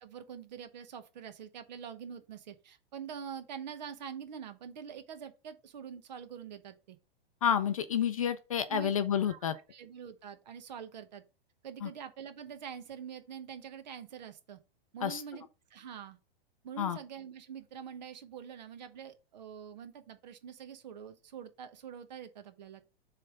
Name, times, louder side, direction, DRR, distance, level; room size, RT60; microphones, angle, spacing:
voice 1, 0.0-7.0 8.7-8.9 9.3-11.2 11.6-14.6 14.9-15.4 15.7-16.2 16.6-22.8, right 8 dB, 45° right, 1.0 m, -45 dB
voice 2, 7.4-9.6 11.8-11.9 15.0-15.2 16.8-17.0, left 8 dB, 35° left, 0.4 m, -29 dB
7.5 x 3.3 x 4.9 m
supercardioid pair, 180°, 30 cm